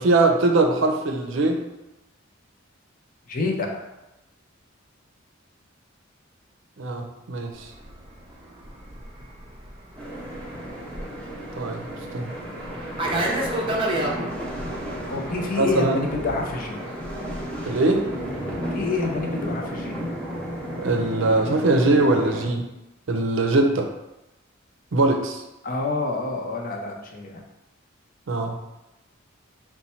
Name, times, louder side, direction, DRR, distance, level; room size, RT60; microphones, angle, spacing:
voice 1, 0.0-1.6 6.8-7.7 11.6-11.9 12.1-12.3 15.6-16.0 17.7-18.0 20.8-22.6 23.1-23.9 24.9-25.4 28.3-28.6, right 2 dB, 70° right, 4 dB, 0.5 m, -21 dB
voice 2, 3.3-3.8 15.1-16.8 18.7-20.0 25.6-27.4, left 3 dB, 45° left, 2 dB, 0.6 m, -28 dB
Fixed-wing aircraft airplane, 7.7-14.2, right 1 dB, 25° right, 0.5 m, -31 dB
sound 1, 10.0-22.5, equal, 5° left, 0.8 m, -33 dB
4.1 x 2.2 x 4.2 m, 0.96 s
head